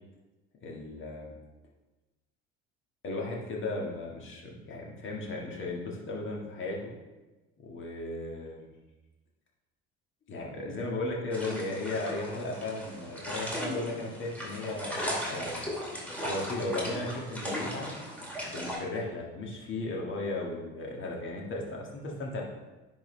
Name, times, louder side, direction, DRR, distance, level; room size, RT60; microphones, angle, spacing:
voice 1, 0.6-1.3 3.0-6.9 7.6-8.7 10.3-15.6 16.2-17.9 18.5-22.4, left 2 dB, 40° left, -2 dB, 1.8 m, -35 dB
sound 1, 11.3-18.8, equal, 5° left, 2.3 m, -37 dB
10.0 x 4.0 x 3.3 m, 1.1 s
hypercardioid pair, 65°, 30 cm